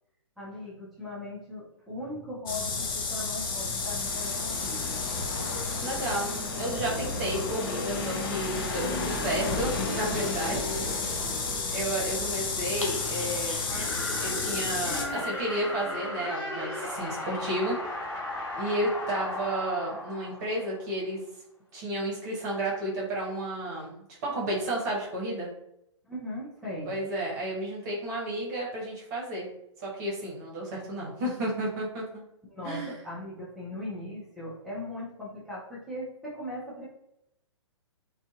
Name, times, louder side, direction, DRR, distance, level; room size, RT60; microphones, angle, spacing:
voice 1, 0.4-5.1 11.0-11.4 26.1-27.0 32.5-36.9, left 1 dB, ahead, -7 dB, 0.6 m, -39 dB
sound 1, 2.5-15.0, left 4 dB, 45° left, 0.6 m, -31 dB
voice 2, 5.8-10.8 11.7-13.6 14.2-17.8 18.5-21.2 21.7-23.9 24.2-25.5 26.8-29.5 29.8-32.0 32.6-33.0, right 1 dB, 35° right, -4 dB, 1.0 m, -32 dB
Dog, 9.3-15.6, left 2 dB, 85° left, 0.7 m, -47 dB
sound 2, 12.1-21.0, left 2 dB, 20° left, 1.2 m, -37 dB
2.6 x 2.3 x 2.4 m, 0.80 s
figure-of-eight pair, 120°, 16 cm